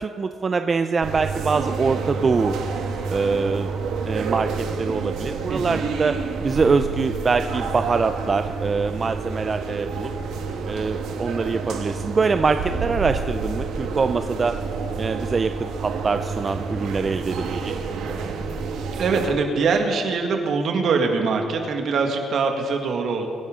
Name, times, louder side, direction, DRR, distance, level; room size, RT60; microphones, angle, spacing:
voice 1, 0.0-2.5 3.1-3.7 4.1-6.2 6.4-10.1 10.7-14.6 15.0-17.8, right 4 dB, 35° right, 8 dB, 0.5 m, -24 dB
sound 1, 1.0-19.3, right 5 dB, 90° right, 1.5 m, -29 dB
voice 2, 5.5-5.9 19.0-23.3, right 4 dB, 65° right, 3 dB, 1.9 m, -23 dB
24.0 x 10.5 x 3.8 m, 2.4 s
cardioid pair, 90°, 0 cm